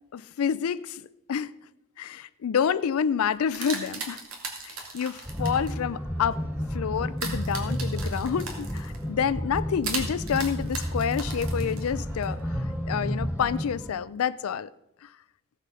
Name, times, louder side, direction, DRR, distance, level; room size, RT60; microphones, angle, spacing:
voice 1, 0.1-1.0 1.3-1.5 2.0-4.2 4.6-6.4 6.7-12.4 12.9-14.7, left 7 dB, 80° left, 0.4 m, -28 dB
sound 1, 3.2-5.7 7.2-9.0 9.8-12.2, right 4 dB, 75° right, 2.3 m, -37 dB
sound 2, 5.2-13.9, equal, 5° right, 2.9 m, -31 dB
16.0 x 7.4 x 5.5 m
head